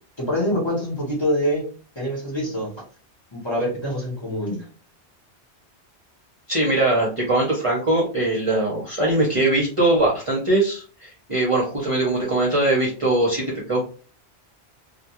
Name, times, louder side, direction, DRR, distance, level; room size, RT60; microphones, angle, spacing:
voice 1, 0.2-1.6 2.0-2.8 3.3-4.6, equal, 25° left, -4 dB, 0.9 m, -25 dB
voice 2, 6.5-13.8, right 2 dB, 35° right, -4 dB, 0.6 m, -21 dB
2.3 x 2.1 x 2.8 m, 0.39 s
omnidirectional pair, 1.1 m